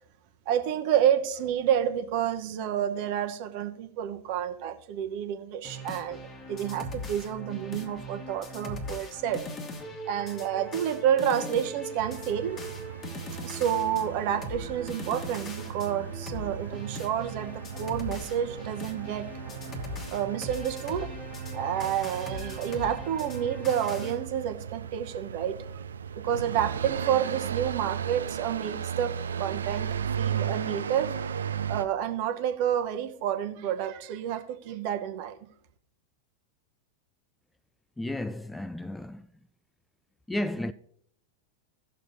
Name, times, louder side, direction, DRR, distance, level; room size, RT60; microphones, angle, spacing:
voice 1, 0.5-6.2 6.5-9.4 10.0-12.6 13.4-19.3 20.1-21.1 21.5-25.7 26.2-31.1 31.7-35.4, right 9 dB, 45° right, 0.9 m, -29 dB
sound 1, 5.6-24.2, left 1 dB, 25° left, 1.2 m, -40 dB
sound 2, 12.0-31.9, right 8 dB, 70° right, 0.3 m, -36 dB
voice 2, 38.0-39.3 40.3-40.7, left 1 dB, 5° left, 0.3 m, -33 dB
17.5 x 6.6 x 2.7 m
figure-of-eight pair, 90°, 0 cm